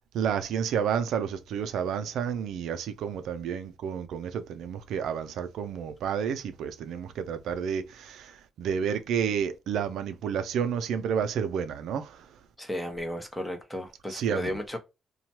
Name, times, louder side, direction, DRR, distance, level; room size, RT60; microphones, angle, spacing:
voice 1, 0.1-12.3 14.1-14.5, right 7 dB, 80° right, 0.4 m, -30 dB
voice 2, 12.6-14.8, left 1 dB, 10° left, 0.8 m, -34 dB
2.8 x 2.2 x 2.8 m
cardioid pair, 110°, 0 cm